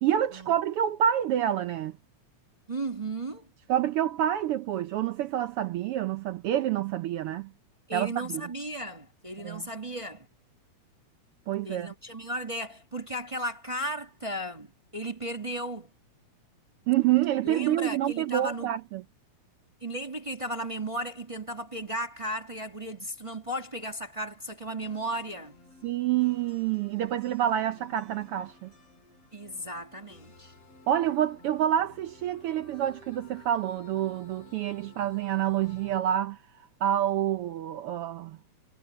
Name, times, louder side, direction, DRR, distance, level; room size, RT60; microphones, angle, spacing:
voice 1, 0.0-1.9 3.7-7.5 7.9-8.4 9.4-9.6 11.5-11.9 16.9-19.0 25.8-28.7 30.9-36.4 36.8-38.4, right 11 dB, 85° right, 1.2 m, -27 dB
voice 2, 2.7-3.5 7.9-10.3 11.6-15.9 17.4-18.7 19.8-25.6 29.3-30.5, right 1 dB, 25° right, 0.6 m, -35 dB
sound 1, 24.8-36.0, left 3 dB, 55° left, 6.8 m, -54 dB
omnidirectional pair, 3.4 m